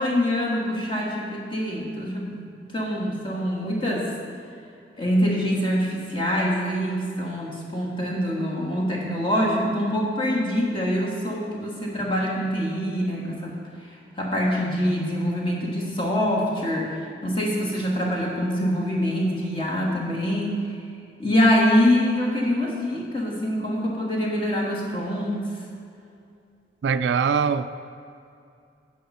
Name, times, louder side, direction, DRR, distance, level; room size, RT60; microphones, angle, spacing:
voice 1, 0.0-2.4 2.7-4.1 5.0-13.5 14.2-16.9 17.2-20.6 21.2-25.5, equal, 30° left, -3 dB, 1.6 m, -24 dB
voice 2, 26.8-27.8, right 6 dB, 85° right, 12 dB, 0.3 m, -22 dB
9.1 x 6.3 x 5.5 m, 2.5 s
head